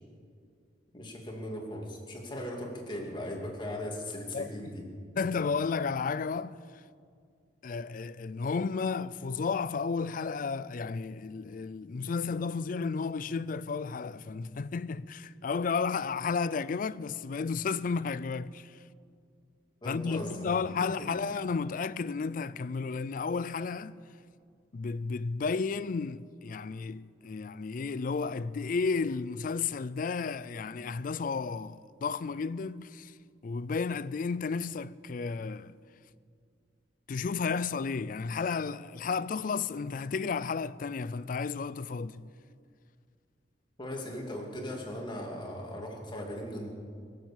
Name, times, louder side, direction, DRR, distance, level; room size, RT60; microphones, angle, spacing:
voice 1, 0.9-4.9 19.8-20.5 20.8-21.1 43.8-46.7, left 1 dB, 25° left, 2.5 m, -38 dB
voice 2, 5.2-6.6 7.6-18.7 19.8-24.0 24.7-33.1 33.4-35.8 37.1-42.3, left 5 dB, 50° left, 0.4 m, -32 dB
23.0 x 7.7 x 7.3 m
head